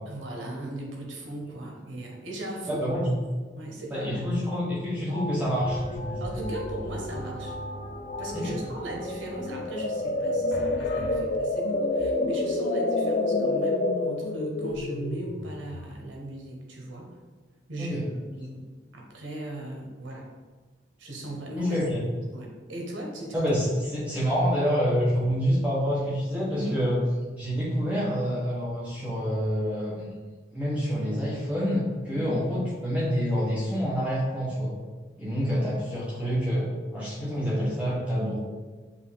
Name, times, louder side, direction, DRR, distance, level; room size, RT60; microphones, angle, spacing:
voice 1, 0.1-2.8 3.6-4.2 6.2-7.6 8.2-17.1 17.7-20.3 21.0-21.8 22.3-23.3 26.5-26.8 32.1-32.4, right 1 dB, 85° right, 0 dB, 0.9 m, -37 dB
voice 2, 2.7-3.2 3.9-6.2 8.3-8.5 17.8-18.0 21.5-22.0 23.3-27.0 27.4-30.1 30.5-34.8 35.2-38.4, equal, 5° right, -8 dB, 0.7 m, -27 dB
sound 1, 4.4-4.5 4.7-7.2 7.5-7.8 8.1-8.6 9.0-15.9, left 2 dB, 45° left, 0.3 m, -29 dB
sound 2, 5.6-11.2, equal, 80° left, 0.7 m, -38 dB
5.5 x 2.4 x 3.3 m, 1.4 s
head